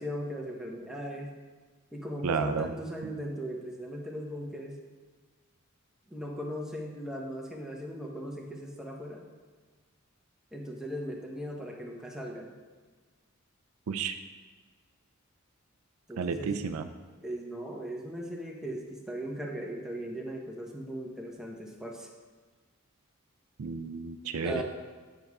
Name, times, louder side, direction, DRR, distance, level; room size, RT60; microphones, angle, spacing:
voice 1, 0.0-1.3 1.9-4.8 6.1-9.2 10.5-12.5 16.1-16.5 17.2-22.1 24.4-24.6, equal, 5° right, -1 dB, 1.0 m, -38 dB
voice 2, 2.2-2.7 13.9-14.2 16.2-16.9 23.6-24.6, right 5 dB, 75° right, 9 dB, 0.4 m, -31 dB
8.1 x 7.0 x 3.6 m, 1.4 s
head